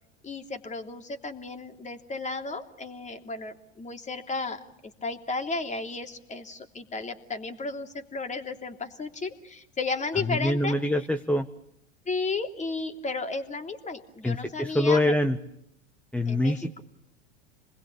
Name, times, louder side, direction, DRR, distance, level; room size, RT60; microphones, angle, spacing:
voice 1, 0.2-10.9 12.0-15.1 16.2-16.8, left 3 dB, 20° left, 6 dB, 3.1 m, -34 dB
voice 2, 10.3-11.5 14.2-15.4 16.1-16.8, left 1 dB, 5° left, 6 dB, 1.3 m, -25 dB
28.0 x 20.5 x 8.6 m, 0.79 s
hypercardioid pair, 100°, 33 cm